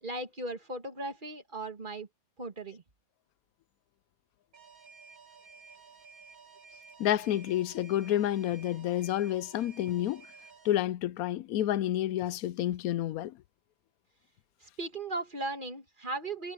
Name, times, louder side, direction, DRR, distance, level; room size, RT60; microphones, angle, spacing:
voice 1, 0.0-2.1 2.4-2.8 14.6-16.5, right 2 dB, 35° right, 2.1 m, -37 dB
Alarm, 4.5-10.8, right 5 dB, 80° right, 2.4 m, -53 dB
voice 2, 7.0-10.3 10.6-13.4, left 12 dB, 90° left, 1.1 m, -29 dB
omnidirectional pair, 1.5 m